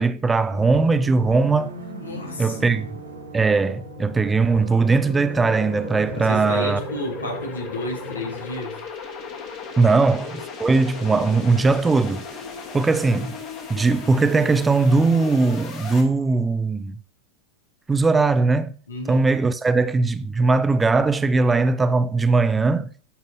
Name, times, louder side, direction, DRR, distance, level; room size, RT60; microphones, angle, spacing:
voice 1, 0.0-1.8 2.4-2.9 3.3-6.8 9.8-12.3 12.7-13.4 13.7-17.0 17.9-18.8 19.1-22.9, right 3 dB, 15° right, 0.5 m, -20 dB
sound 1, 0.5-8.5, right 3 dB, 75° right, 1.1 m, -38 dB
sound 2, 1.6-16.0, left 5 dB, 40° left, 1.4 m, -37 dB
voice 2, 2.0-2.6 6.1-8.8 9.8-10.0 18.9-19.3, left 1 dB, 70° left, 1.5 m, -32 dB
11.5 x 4.0 x 2.7 m
figure-of-eight pair, 90°, 0 cm